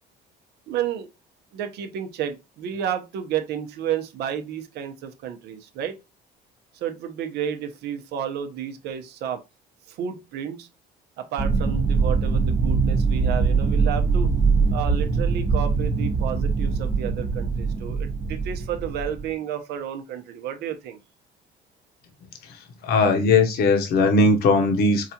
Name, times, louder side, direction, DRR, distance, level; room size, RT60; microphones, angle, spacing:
voice 1, 0.7-1.1 1.5-6.0 6.8-9.4 9.9-10.7 11.2-14.3 14.7-21.0, right 9 dB, 80° right, 0.7 m, -31 dB
sound 1, 11.4-19.3, right 4 dB, 40° right, 0.8 m, -22 dB
voice 2, 22.8-25.1, left 3 dB, 70° left, 0.9 m, -19 dB
4.7 x 2.4 x 2.8 m
cardioid pair, 110°, 17 cm